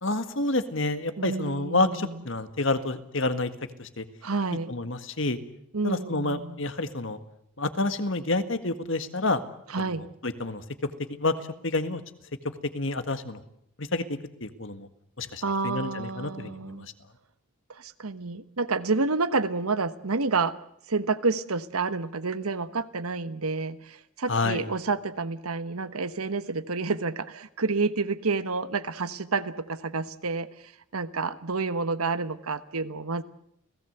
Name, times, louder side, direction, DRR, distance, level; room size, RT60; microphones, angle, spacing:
voice 1, 0.0-3.5 3.8-4.0 4.7-5.4 5.8-7.2 7.6-9.4 9.8-9.9 10.2-10.6 11.2-11.4 11.6-12.0 12.7-13.4 13.8-14.0 14.4-14.9 15.2-16.9 24.3-24.6, left 2 dB, 60° left, 10 dB, 1.8 m, -28 dB
voice 2, 1.2-2.2 4.2-4.7 5.7-6.6 9.7-10.0 15.4-16.9 17.7-20.5 20.9-33.2, right 4 dB, 90° right, 13 dB, 1.2 m, -29 dB
29.5 x 17.5 x 8.0 m, 0.73 s
head